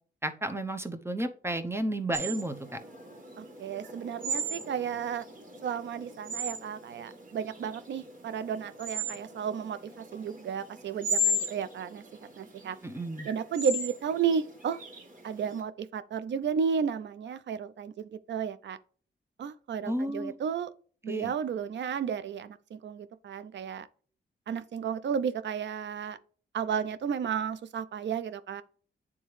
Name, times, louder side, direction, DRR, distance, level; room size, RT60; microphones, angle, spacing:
voice 1, 0.2-2.8 12.8-13.3 19.8-20.3 21.0-21.3, right 1 dB, 15° right, 0.7 m, -32 dB
sound 1, 2.1-15.6, equal, 45° right, 2.2 m, -35 dB
voice 2, 3.4-5.3 5.6-12.0 12.4-12.8 13.2-14.8 15.2-18.8 19.4-20.7 21.0-23.9 24.5-26.2 26.5-28.6, right 7 dB, 70° right, 0.5 m, -33 dB
9.2 x 3.5 x 3.2 m
cardioid pair, 95°, 19 cm